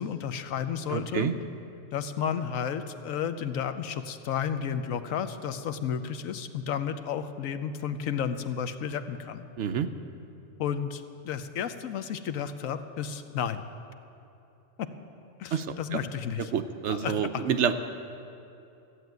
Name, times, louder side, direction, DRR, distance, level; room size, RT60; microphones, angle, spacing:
voice 1, 0.0-1.3 1.9-9.5 10.6-13.6 14.8-14.9 15.4-16.5 16.9-17.5, left 8 dB, 80° left, 10 dB, 1.1 m, -32 dB
voice 2, 0.9-1.3 9.6-9.9 15.5-16.0 16.5-17.7, right 7 dB, 65° right, 9 dB, 0.9 m, -28 dB
14.5 x 7.7 x 9.3 m, 2.8 s
omnidirectional pair, 1.4 m